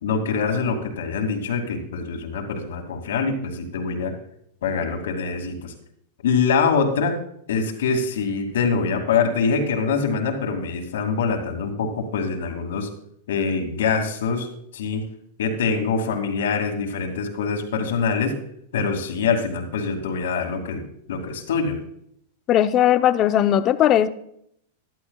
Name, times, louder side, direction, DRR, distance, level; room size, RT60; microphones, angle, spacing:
voice 1, 0.0-4.1 4.6-5.7 6.2-7.2 7.5-12.9 13.3-14.5 14.7-15.0 15.4-18.3 18.7-20.8 21.1-21.8, left 5 dB, 80° left, 3 dB, 2.4 m, -24 dB
voice 2, 22.5-24.1, left 11 dB, 35° left, 11 dB, 0.8 m, -18 dB
15.0 x 11.5 x 2.4 m, 0.70 s
hypercardioid pair, 135°, 0 cm